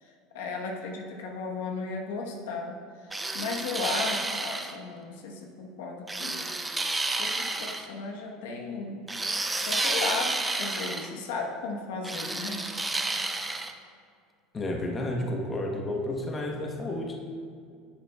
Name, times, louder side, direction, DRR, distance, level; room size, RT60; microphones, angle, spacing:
voice 1, 0.0-6.5 7.1-9.0 9.6-12.7, left 4 dB, 85° left, 1 dB, 1.0 m, -35 dB
sound 1, 3.1-4.8 6.1-7.9 9.1-11.1 12.0-13.7, right 2 dB, 10° right, 0.4 m, -30 dB
voice 2, 14.5-17.2, left 1 dB, 20° left, 1 dB, 0.9 m, -31 dB
10.5 x 6.8 x 2.3 m, 2.3 s
supercardioid pair, 125°, 0 cm